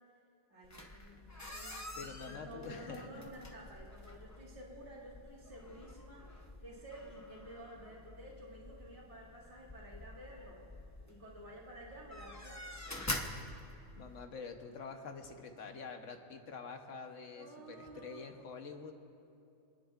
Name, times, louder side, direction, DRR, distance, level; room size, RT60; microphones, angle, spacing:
voice 1, 0.5-10.7 11.1-12.8 17.2-18.3, right 1 dB, 40° right, -8 dB, 2.5 m, -52 dB
sound 1, 0.6-14.3, left 1 dB, 15° left, 0.7 m, -47 dB
voice 2, 2.0-3.3 14.0-18.9, left 4 dB, 85° left, 4 dB, 1.3 m, -47 dB
27.0 x 10.0 x 2.5 m, 2.7 s
omnidirectional pair, 1.3 m